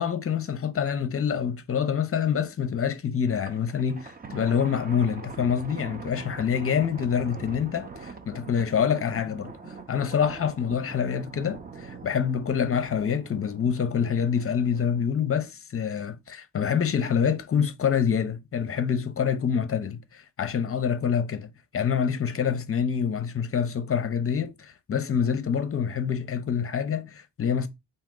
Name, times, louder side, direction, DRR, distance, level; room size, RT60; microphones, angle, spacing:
voice 1, 0.0-21.5 21.7-27.7, left 7 dB, 35° left, 0.6 m, -26 dB
Thunder, 3.3-15.1, right 4 dB, 25° right, 0.6 m, -43 dB
3.8 x 2.7 x 3.7 m
cardioid pair, 90°, 40 cm